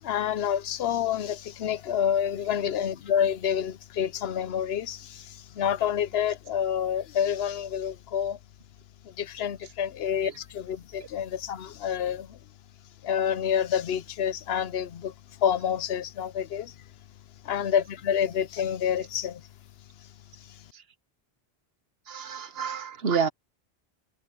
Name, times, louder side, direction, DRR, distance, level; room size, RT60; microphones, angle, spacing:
voice 1, 0.0-8.4 9.0-12.4 13.0-15.1 15.4-16.7 17.4-19.4 20.5-20.6, left 9 dB, 75° left, 0.9 m, -28 dB
voice 2, 22.1-23.3, right 6 dB, 70° right, 1.2 m, -29 dB
omnidirectional pair, 1.1 m